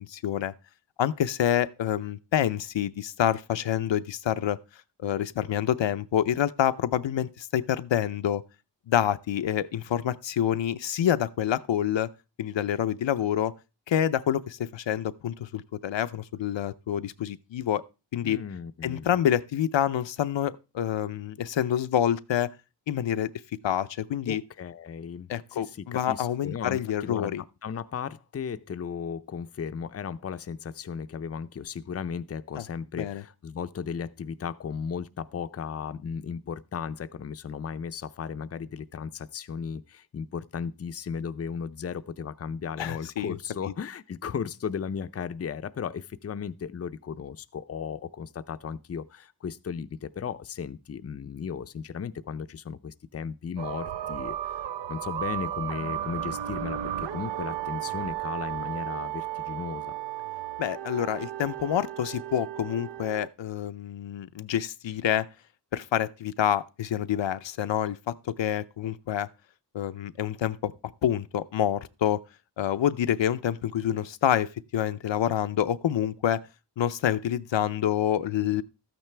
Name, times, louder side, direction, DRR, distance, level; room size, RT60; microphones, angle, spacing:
voice 1, 0.1-0.5 1.0-4.6 5.0-8.4 8.9-12.1 12.4-13.5 13.9-17.8 18.1-18.4 18.8-22.5 22.9-23.3 23.6-24.4 25.3-27.4 32.6-32.7 33.0-33.2 42.8-43.4 60.6-65.3 65.7-69.3 69.7-70.7 71.0-72.2 72.6-76.4 76.8-78.6, left 10 dB, 80° left, 0.6 m, -27 dB
voice 2, 18.2-19.1 24.3-59.9, left 6 dB, 35° left, 0.5 m, -35 dB
sound 1, 53.6-63.3, right 12 dB, 75° right, 0.6 m, -34 dB
13.0 x 9.1 x 3.3 m
wide cardioid pair, 90°, 44 cm